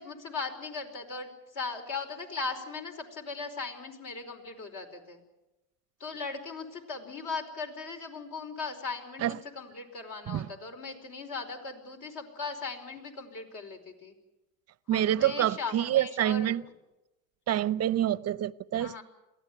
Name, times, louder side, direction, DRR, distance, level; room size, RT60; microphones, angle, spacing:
voice 1, 0.0-5.2 6.0-14.1 14.9-16.6 18.8-19.0, left 4 dB, 50° left, 4.9 m, -38 dB
voice 2, 14.9-16.6 17.5-19.0, right 12 dB, 35° right, 0.7 m, -27 dB
22.5 x 16.5 x 9.2 m
supercardioid pair, 100°, 46 cm